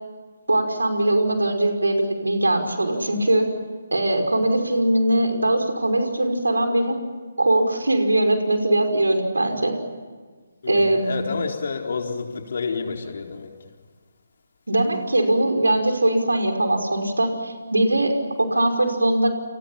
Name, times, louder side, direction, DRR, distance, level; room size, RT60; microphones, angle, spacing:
voice 1, 0.5-3.5 3.9-7.0 7.4-9.8 10.7-11.3 14.7-19.3, right 1 dB, 75° right, 5 dB, 5.5 m, -21 dB
voice 2, 10.6-13.5, left 5 dB, 55° left, 2 dB, 4.3 m, -29 dB
29.5 x 28.5 x 5.8 m, 1.5 s
figure-of-eight pair, 145°, 0 cm